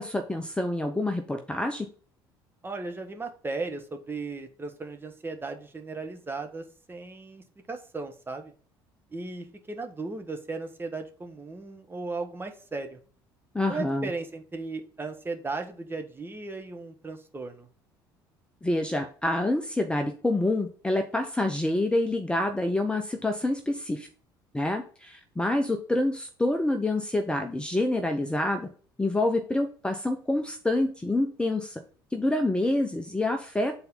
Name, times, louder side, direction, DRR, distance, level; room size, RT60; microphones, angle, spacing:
voice 1, 0.0-1.9 13.5-14.1 18.6-24.1 24.5-28.7 29.0-31.8 32.1-33.7, left 1 dB, 10° left, 5 dB, 0.8 m, -27 dB
voice 2, 2.6-8.5 9.1-13.0 13.7-17.7, right 3 dB, 20° right, 5 dB, 1.4 m, -36 dB
7.9 x 4.1 x 5.6 m, 0.42 s
figure-of-eight pair, 55°, 12 cm